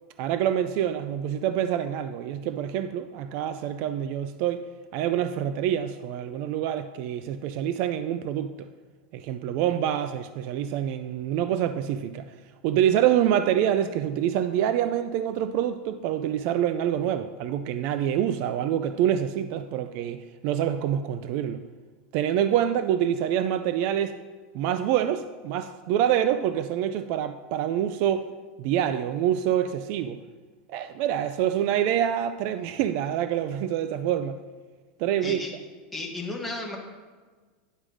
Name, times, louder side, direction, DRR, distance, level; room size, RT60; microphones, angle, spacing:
voice 1, 0.2-4.6 4.9-8.7 9.1-12.3 12.6-21.6 22.1-24.2 24.5-28.3 28.6-30.2 30.7-34.4 35.0-35.4, right 10 dB, 40° right, 11 dB, 0.3 m, -26 dB
voice 2, 35.2-35.5 35.9-36.8, left 2 dB, ahead, -3 dB, 1.3 m, -33 dB
10.0 x 5.0 x 6.3 m, 1.4 s
supercardioid pair, 170°, 5 cm